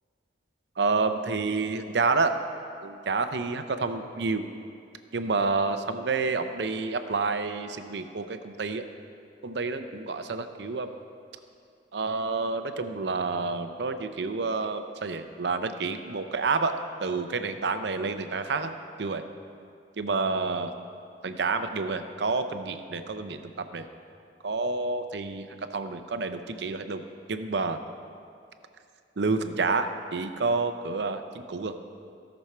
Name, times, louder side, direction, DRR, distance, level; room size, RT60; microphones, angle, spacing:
voice 1, 0.8-2.4 2.8-4.5 5.1-8.8 9.4-10.9 11.9-19.2 20.0-20.7 21.2-23.9 24.4-27.0 27.3-27.8 29.2-31.7, right 4 dB, 70° right, 8 dB, 0.6 m, -29 dB
17.0 x 6.3 x 4.4 m, 2.4 s
head